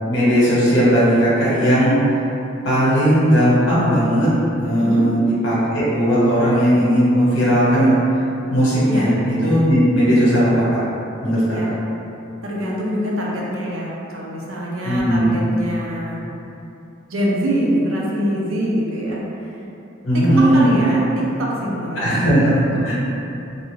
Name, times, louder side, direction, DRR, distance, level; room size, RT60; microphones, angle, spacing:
voice 1, 0.0-2.0 2.6-4.3 4.6-8.3 8.5-10.8 11.2-11.4 14.8-15.4 20.0-20.7 21.9-22.9, equal, 70° left, -9 dB, 1.1 m, -17 dB
voice 2, 4.8-5.1 8.8-9.1 11.5-11.7 12.4-16.2 17.1-19.5 20.1-20.3 20.5-22.0 22.4-22.9, equal, 80° right, -4 dB, 0.6 m, -24 dB
2.5 x 2.3 x 3.2 m, 2.8 s
head